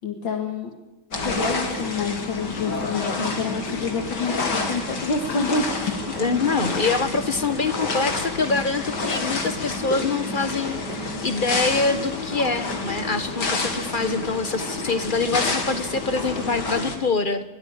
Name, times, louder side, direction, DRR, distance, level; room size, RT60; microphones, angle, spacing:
voice 1, 0.0-0.7 1.2-6.0, left 4 dB, 85° left, 2 dB, 2.6 m, -27 dB
sound 1, 1.1-17.0, left 3 dB, 65° left, 3.0 m, -29 dB
Fireworks, 4.8-16.9, right 2 dB, 75° right, 6.2 m, -44 dB
voice 2, 6.1-17.4, left 4 dB, 35° left, 11 dB, 1.1 m, -25 dB
23.0 x 17.5 x 8.8 m, 1.0 s
omnidirectional pair, 2.0 m